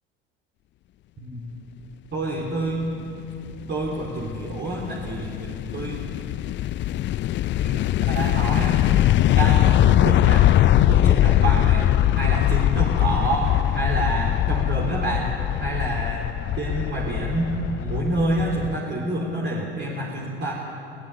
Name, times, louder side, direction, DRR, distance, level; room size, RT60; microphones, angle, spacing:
voice 1, 1.2-1.5 2.1-2.9 3.7-5.4 5.7-6.0 7.6-8.8 9.2-13.5 13.7-15.3 15.6-16.3 16.6-17.5 17.8-20.5, right 2 dB, 35° right, -4 dB, 3.7 m, -28 dB
sound 1, 3.2-18.8, left 13 dB, 35° left, 0.5 m, -21 dB
22.0 x 17.5 x 8.2 m, 2.8 s
hypercardioid pair, 70°, 31 cm